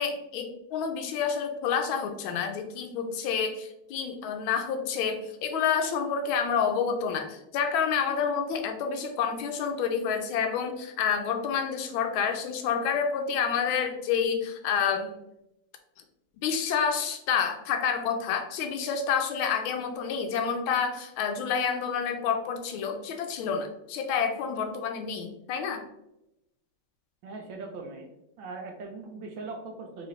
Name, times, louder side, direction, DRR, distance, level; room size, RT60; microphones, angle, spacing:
voice 1, 0.0-15.1 16.4-25.8, left 6 dB, 75° left, 5 dB, 1.3 m, -29 dB
voice 2, 27.2-28.1 28.4-30.1, right 3 dB, 70° right, 3 dB, 1.4 m, -40 dB
4.3 x 3.7 x 3.0 m, 0.86 s
omnidirectional pair, 2.3 m